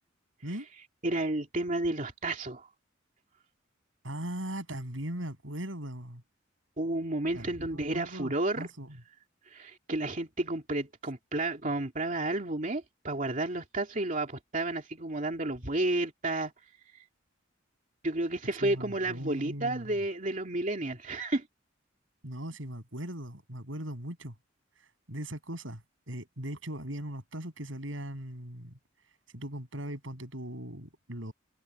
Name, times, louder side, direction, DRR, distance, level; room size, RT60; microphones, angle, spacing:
voice 1, 1.0-2.7 6.8-8.7 9.5-16.5 16.9-17.0 18.0-21.5, right 2 dB, 40° right, 2.7 m, -31 dB
voice 2, 4.0-6.2 7.3-9.0 18.6-20.0 22.2-24.3 25.1-28.8 29.3-31.3, right 1 dB, 85° right, 7.5 m, -39 dB
head